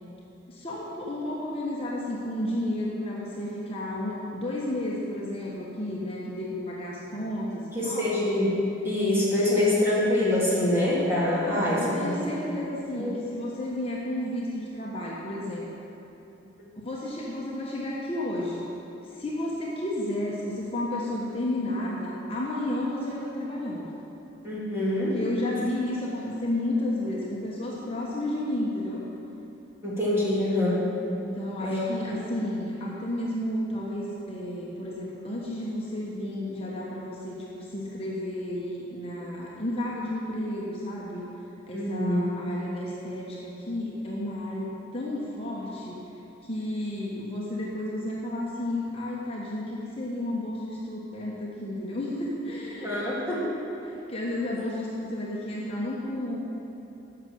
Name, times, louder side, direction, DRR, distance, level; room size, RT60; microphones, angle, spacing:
voice 1, 0.5-8.2 11.4-15.7 16.7-18.6 19.1-23.9 25.0-29.0 31.2-41.2 41.7-46.0 46.4-53.0 53.8-56.4, left 1 dB, 30° left, -5 dB, 1.2 m, -32 dB
voice 2, 7.7-8.6 8.8-12.1 13.0-13.1 24.4-25.2 29.8-30.8 31.6-31.8 41.7-42.3 52.8-53.5, left 1 dB, 10° right, -8 dB, 2.7 m, -25 dB
11.5 x 6.8 x 7.8 m, 3.0 s
head